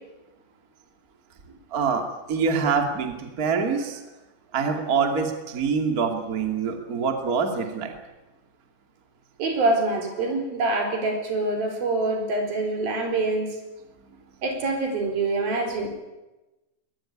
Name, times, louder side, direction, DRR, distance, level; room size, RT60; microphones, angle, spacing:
voice 1, 1.7-4.0 4.5-7.9, right 5 dB, 25° right, 4 dB, 2.4 m, -25 dB
voice 2, 9.4-13.6 14.4-15.9, right 2 dB, 70° right, 3 dB, 6.0 m, -25 dB
21.0 x 20.0 x 10.0 m, 1.1 s
omnidirectional pair, 4.3 m